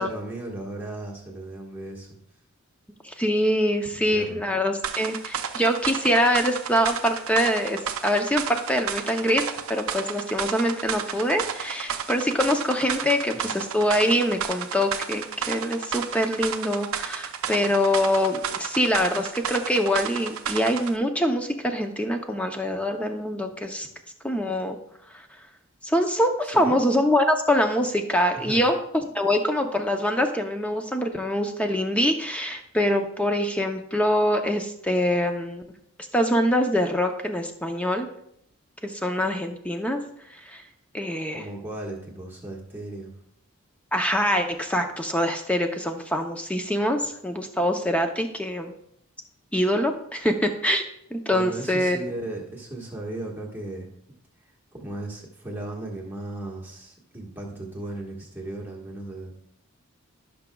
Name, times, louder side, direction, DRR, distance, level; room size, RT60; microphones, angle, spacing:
voice 1, 0.0-2.2 4.1-4.4 13.0-13.4 26.4-26.8 28.3-28.7 41.3-43.1 51.3-53.9 54.7-59.3, right 2 dB, 10° right, -2 dB, 1.4 m, -36 dB
voice 2, 3.0-9.4 9.7-23.9 24.2-24.8 25.1-25.3 25.8-28.8 29.1-35.6 36.1-38.1 38.8-40.0 40.3-40.6 40.9-41.4 43.9-48.7 49.5-50.8 51.1-52.0, equal, 5° left, 5 dB, 0.6 m, -24 dB
sound 1, 4.8-21.0, right 7 dB, 75° right, 0.6 m, -32 dB
15.5 x 6.0 x 2.3 m, 0.74 s
head